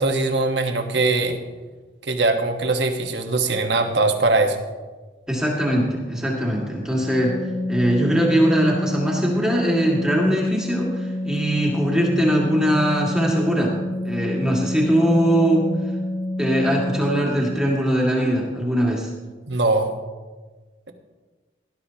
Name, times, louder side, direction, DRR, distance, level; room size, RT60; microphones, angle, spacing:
voice 1, 0.0-1.4 2.0-4.6 19.5-19.9, right 2 dB, 75° right, 5 dB, 1.3 m, -21 dB
voice 2, 5.3-7.3 7.7-13.7 14.0-15.6 16.4-19.1, equal, 5° right, -3 dB, 1.9 m, -21 dB
Organ, 7.0-17.6, left 1 dB, 25° left, 3.5 m, -28 dB
17.5 x 12.0 x 2.9 m, 1.3 s
head